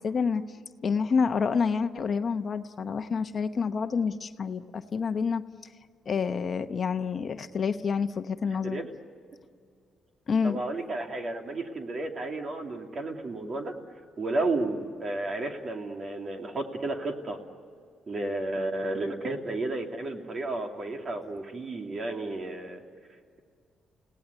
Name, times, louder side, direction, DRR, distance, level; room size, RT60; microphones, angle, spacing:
voice 1, 0.0-5.4 6.1-8.8 10.3-10.6, left 5 dB, 45° left, 9 dB, 1.0 m, -28 dB
voice 2, 10.4-13.8 14.2-17.4 18.1-22.8, right 2 dB, 45° right, 4 dB, 2.8 m, -32 dB
29.5 x 18.0 x 9.6 m, 2.2 s
cardioid pair, 90°, 0 cm